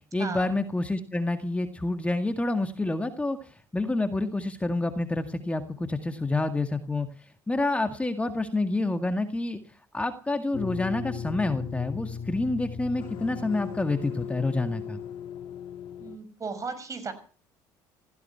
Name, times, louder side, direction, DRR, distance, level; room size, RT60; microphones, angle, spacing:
voice 1, 0.1-7.1 7.5-9.6 9.9-15.0, left 2 dB, 15° left, 7 dB, 1.9 m, -28 dB
sound 1, 10.5-16.2, left 7 dB, 60° left, 2.8 m, -37 dB
voice 2, 16.0-17.1, right 4 dB, 35° right, 11 dB, 6.3 m, -35 dB
16.0 x 15.5 x 5.8 m, 0.41 s
supercardioid pair, 75°, 10 cm